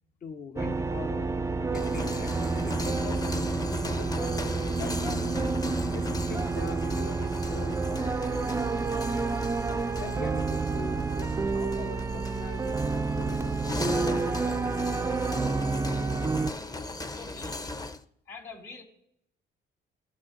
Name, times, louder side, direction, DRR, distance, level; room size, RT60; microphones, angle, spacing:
voice 1, 0.2-1.3 1.7-5.5 5.9-9.4 10.0-13.9 14.2-15.1, left 5 dB, 45° left, 5 dB, 0.8 m, -43 dB
sound 1, 0.6-16.5, right 4 dB, 15° right, 0.4 m, -29 dB
sound 2, 1.6-18.0, left 2 dB, 20° left, 0.7 m, -38 dB
voice 2, 17.1-17.6 18.3-18.8, left 4 dB, 80° left, -4 dB, 4.3 m, -44 dB
18.0 x 8.6 x 2.5 m, 0.75 s
cardioid pair, 90°, 20 cm